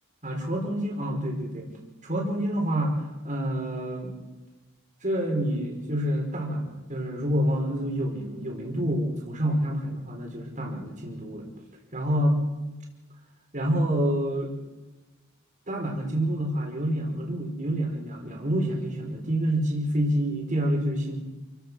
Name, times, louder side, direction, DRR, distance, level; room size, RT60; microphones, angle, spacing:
voice 1, 0.2-1.7 2.0-4.1 5.0-11.5 11.9-12.4 13.5-14.5 15.7-21.2, equal, 35° right, 1 dB, 5.1 m, -27 dB
29.0 x 16.0 x 6.4 m, 1.1 s
head